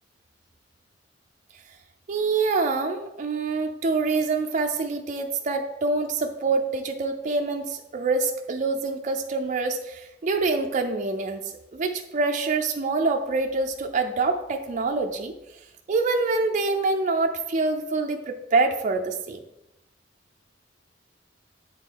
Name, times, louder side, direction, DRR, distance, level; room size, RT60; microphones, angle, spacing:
voice 1, 2.1-15.4 15.9-19.4, right 3 dB, 40° right, 3 dB, 0.5 m, -26 dB
7.9 x 3.7 x 4.6 m, 0.90 s
head